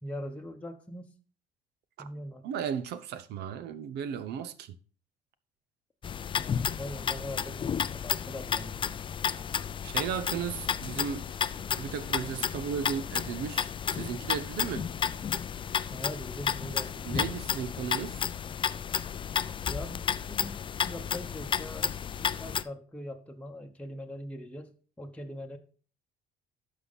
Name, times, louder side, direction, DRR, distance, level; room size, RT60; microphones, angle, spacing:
voice 1, 0.0-1.1 2.0-2.4 6.4-8.9 15.9-17.3 19.7-25.6, left 1 dB, 5° left, 1.0 m, -42 dB
voice 2, 2.4-4.8 9.8-11.3 11.7-14.9 17.0-18.3, right 7 dB, 75° right, 0.9 m, -35 dB
sound 1, 6.0-22.6, left 7 dB, 30° left, 0.4 m, -32 dB
11.5 x 6.4 x 4.1 m
cardioid pair, 110°, 17 cm